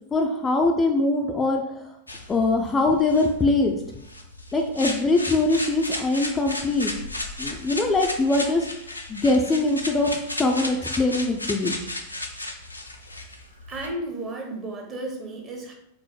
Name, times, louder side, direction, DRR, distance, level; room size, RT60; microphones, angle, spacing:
voice 1, 0.1-1.9 2.3-3.8 4.5-6.9 7.4-8.7 9.1-11.8, left 2 dB, 15° left, 2 dB, 0.3 m, -22 dB
sound 1, 2.1-13.9, left 1 dB, 85° left, 0.4 m, -34 dB
voice 2, 13.7-15.7, right 2 dB, 30° right, 2 dB, 0.8 m, -33 dB
4.6 x 2.0 x 3.1 m, 0.78 s
figure-of-eight pair, 90°, 0 cm